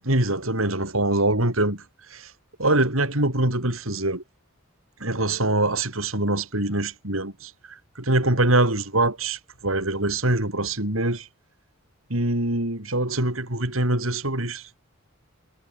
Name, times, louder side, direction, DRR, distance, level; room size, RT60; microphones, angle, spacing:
voice 1, 0.0-1.8 2.1-2.3 2.6-4.2 5.0-11.3 12.1-14.7, right 2 dB, 75° right, 6.1 m, -24 dB
head